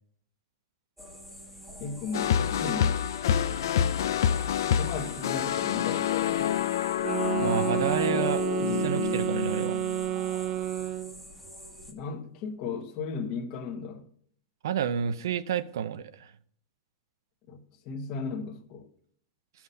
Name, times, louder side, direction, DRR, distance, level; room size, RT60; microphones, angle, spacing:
sound 1, 1.0-11.9, equal, ahead, 1.2 m, -46 dB
voice 1, 1.8-3.0 4.5-6.6 11.9-14.1 17.5-17.6 17.8-18.9, left 5 dB, 35° left, 1.2 m, -36 dB
sound 2, 2.1-10.3, left 9 dB, 75° left, 0.5 m, -28 dB
sound 3, 7.0-11.2, right 11 dB, 25° right, 0.3 m, -30 dB
voice 2, 7.4-9.8 14.6-16.3, right 8 dB, 80° right, 0.7 m, -30 dB
14.0 x 5.9 x 5.5 m
supercardioid pair, 165°, 2 cm